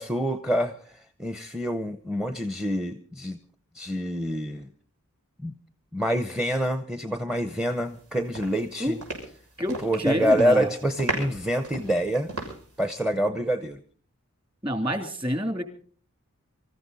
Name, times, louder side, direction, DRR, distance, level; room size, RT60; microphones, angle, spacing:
voice 1, 0.0-3.4 3.7-4.7 5.4-5.6 5.9-9.0 9.8-12.3 12.8-13.8, equal, 5° right, 10 dB, 0.7 m, -26 dB
sound 1, 7.8-8.0 8.3-10.0 10.3-10.6 11.0-12.8, right 2 dB, 85° right, 6.3 m, -35 dB
voice 2, 9.6-10.7 14.6-15.6, equal, 25° right, 6 dB, 2.8 m, -27 dB
25.0 x 14.0 x 4.1 m, 0.44 s
head